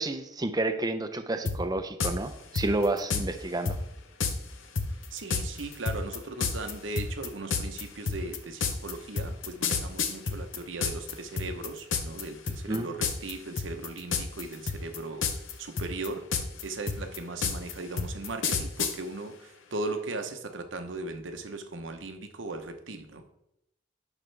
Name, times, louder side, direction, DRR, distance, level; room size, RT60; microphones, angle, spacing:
voice 1, 0.0-3.8 12.7-12.9, right 2 dB, 20° right, 8 dB, 0.5 m, -30 dB
sound 1, 1.5-1.6 2.0-2.1 2.6-3.2 3.7-3.8 4.2-4.3 4.8-11.1 11.4-12.2 12.5-12.8 13.0-13.3 13.6-14.4 14.7-15.5 15.8-18.9, left 5 dB, 85° left, 0.8 m, -29 dB
voice 2, 5.1-16.3 16.6-23.2, right 2 dB, 75° right, 6 dB, 0.9 m, -38 dB
10.5 x 4.9 x 3.3 m, 0.81 s
head